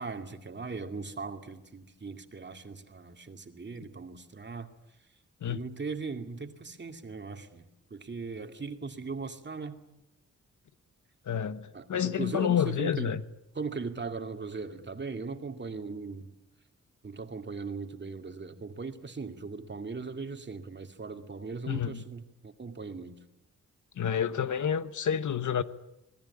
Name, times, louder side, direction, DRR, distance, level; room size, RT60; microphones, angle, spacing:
voice 1, 0.0-4.7 5.5-9.8 11.7-13.1 13.6-16.3 17.0-23.2, right 4 dB, 35° right, 2.4 m, -39 dB
voice 2, 11.2-13.2 21.7-22.0 24.0-25.6, left 8 dB, 75° left, 1.2 m, -29 dB
26.5 x 19.5 x 9.8 m
wide cardioid pair, 120°, 30 cm